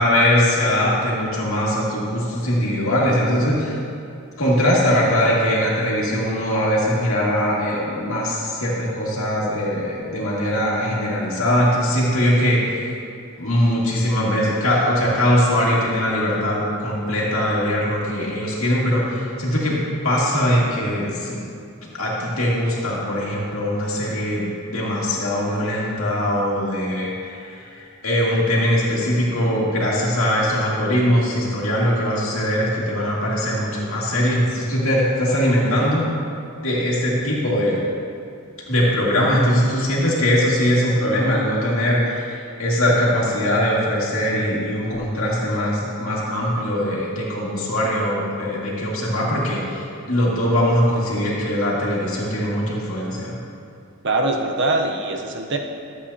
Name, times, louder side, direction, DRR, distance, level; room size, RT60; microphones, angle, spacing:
voice 1, 0.0-3.7 4.4-12.6 13.4-21.4 22.0-27.7 28.0-36.1 36.6-37.8 38.7-53.4, equal, 70° left, -5 dB, 2.3 m, -21 dB
voice 2, 54.0-55.6, right 2 dB, 55° right, 2 dB, 0.8 m, -22 dB
13.5 x 8.2 x 2.8 m, 2.5 s
head